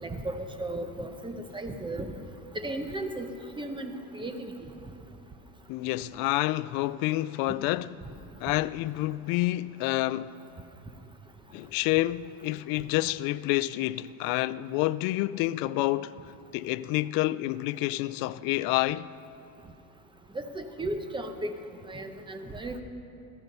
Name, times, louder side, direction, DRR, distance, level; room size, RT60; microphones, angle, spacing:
voice 1, 0.0-2.1 2.5-3.3 3.6-4.5 20.3-21.6 21.9-22.8, right 1 dB, 10° right, 0.9 m, -35 dB
voice 2, 5.7-7.9 8.4-10.4 11.5-16.1 16.5-19.1, left 17 dB, 55° left, 0.5 m, -28 dB
15.0 x 14.0 x 5.4 m
cardioid pair, 135°, 42 cm